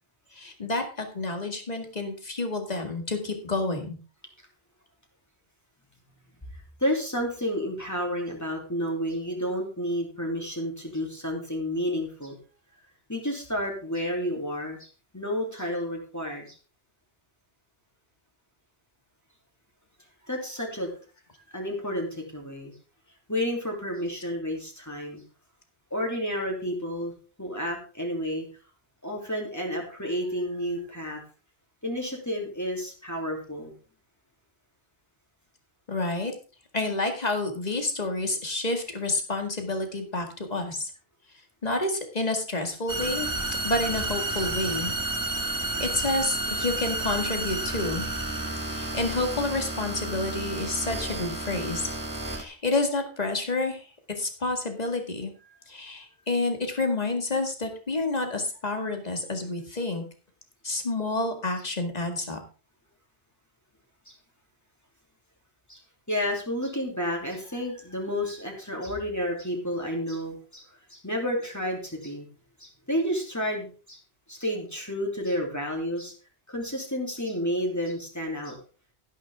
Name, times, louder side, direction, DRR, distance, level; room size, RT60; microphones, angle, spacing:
voice 1, 0.3-4.0 35.9-36.3 36.7-40.9 41.6-43.3 43.6-44.9 45.4-45.5 45.8-48.1 48.7-51.9 52.3-55.3 55.7-60.0 60.6-62.4, left 2 dB, 40° left, 5 dB, 2.0 m, -29 dB
voice 2, 6.8-12.4 13.1-14.9 15.1-16.6 20.3-20.9 21.5-22.7 23.3-25.2 25.9-27.1 27.4-28.5 29.0-31.2 31.8-33.7 48.6-48.9 64.1-64.2 65.7-65.8 66.1-72.3 72.6-74.0 74.3-76.1 76.5-78.6, equal, 15° left, -1 dB, 3.0 m, -31 dB
sound 1, 42.9-52.4, right 2 dB, 20° right, 1.5 m, -31 dB
12.0 x 11.0 x 3.6 m, 0.36 s
omnidirectional pair, 1.0 m